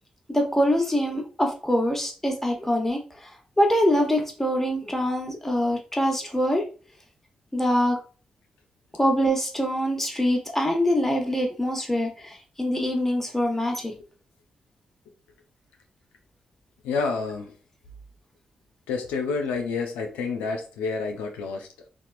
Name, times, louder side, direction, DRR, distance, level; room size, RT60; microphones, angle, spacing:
voice 1, 0.3-3.0 3.6-6.6 7.5-8.0 8.9-13.9, equal, 10° left, 2 dB, 1.0 m, -24 dB
voice 2, 16.8-17.5 18.9-21.9, left 4 dB, 90° left, 3 dB, 0.4 m, -29 dB
2.8 x 2.3 x 2.4 m, 0.36 s
supercardioid pair, 40°, 3 cm